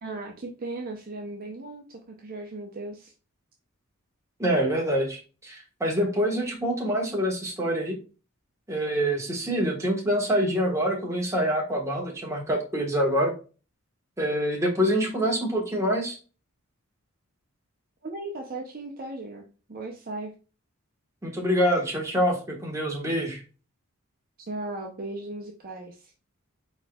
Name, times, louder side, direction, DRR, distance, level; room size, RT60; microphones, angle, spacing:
voice 1, 0.0-3.1 18.0-19.4 19.7-20.3 24.4-26.1, right 2 dB, 45° right, 1 dB, 0.6 m, -37 dB
voice 2, 4.4-8.0 8.7-13.3 14.2-16.2 21.2-23.4, equal, 15° right, 0 dB, 1.3 m, -26 dB
4.5 x 4.4 x 2.3 m, 0.34 s
head